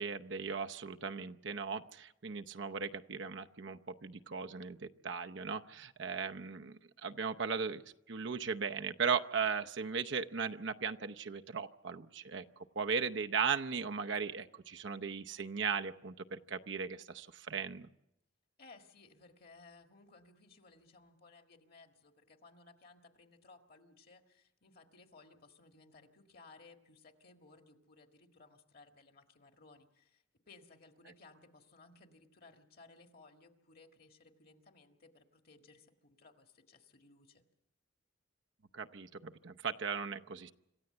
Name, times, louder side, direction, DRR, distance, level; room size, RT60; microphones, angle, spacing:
voice 1, 0.0-7.8 8.1-17.9 38.7-40.5, right 6 dB, 65° right, 7 dB, 0.7 m, -37 dB
voice 2, 18.6-37.4, left 3 dB, 50° left, 5 dB, 1.8 m, -60 dB
26.5 x 14.5 x 7.8 m, 0.86 s
head